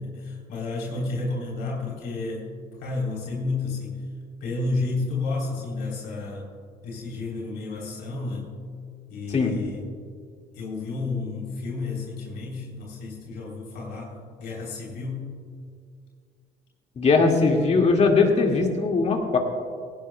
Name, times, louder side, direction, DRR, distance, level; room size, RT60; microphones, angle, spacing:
voice 1, 0.0-2.5 2.8-4.0 4.4-6.5 6.8-8.5 9.1-9.8 10.5-15.3, left 3 dB, 85° left, -3 dB, 3.6 m, -31 dB
voice 2, 17.0-19.4, left 4 dB, 40° left, 1 dB, 2.2 m, -20 dB
18.0 x 18.0 x 2.3 m, 2.2 s
cardioid pair, 110°, 17 cm